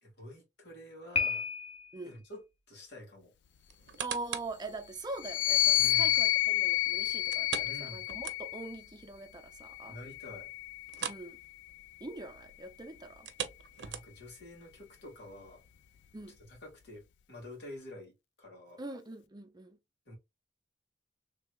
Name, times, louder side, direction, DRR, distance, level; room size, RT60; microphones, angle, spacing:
voice 1, 0.0-1.5 2.0-3.3 5.8-6.2 7.6-8.0 9.9-10.5 13.8-15.6 16.5-18.8 20.1-20.2, left 1 dB, 70° left, 2.0 m, -48 dB
Piano, 1.1-2.1, left 5 dB, 35° left, 0.6 m, -33 dB
sound 1, 3.7-4.6 5.1-5.2 7.3-8.8 9.1-9.2 9.6-9.7 10.9-11.3 11.6-11.8 13.1-14.4 15.0-15.1, right 8 dB, 85° right, 0.5 m, -40 dB
voice 2, 4.0-10.0 11.1-11.4 12.0-13.3 16.1-16.4 18.8-19.8, right 2 dB, 25° right, 0.5 m, -43 dB
sound 2, 5.2-8.8 9.6-11.2, left 14 dB, 90° left, 0.3 m, -30 dB
3.3 x 3.2 x 2.3 m
head